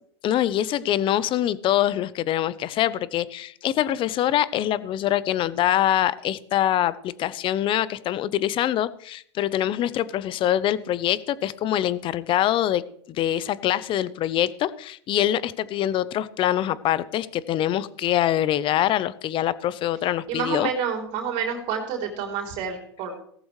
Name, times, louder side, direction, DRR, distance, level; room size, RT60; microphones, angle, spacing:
voice 1, 0.2-12.8 13.1-20.7, left 12 dB, 35° left, 18 dB, 0.7 m, -24 dB
voice 2, 20.3-23.2, right 6 dB, 50° right, 2 dB, 3.4 m, -29 dB
16.5 x 14.5 x 3.2 m, 0.62 s
hypercardioid pair, 105°, 14 cm